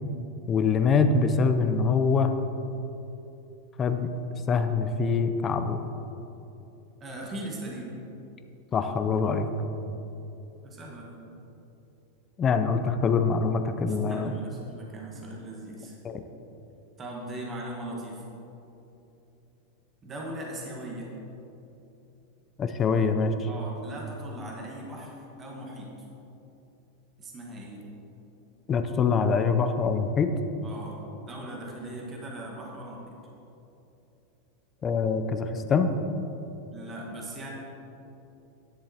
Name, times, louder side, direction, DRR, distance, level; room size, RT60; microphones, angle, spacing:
voice 1, 0.5-2.3 3.8-4.1 4.5-5.8 8.7-9.5 12.4-14.3 16.0-16.2 22.6-23.3 28.7-30.3 34.8-35.9, left 5 dB, 25° left, 8 dB, 0.6 m, -24 dB
voice 2, 7.0-8.0 10.6-11.2 13.9-16.0 17.0-18.2 20.0-21.1 23.5-25.9 27.2-27.9 30.6-33.2 36.7-37.5, right 1 dB, 20° right, -2 dB, 1.6 m, -39 dB
10.5 x 7.3 x 4.3 m, 2.9 s
supercardioid pair, 140°, 0 cm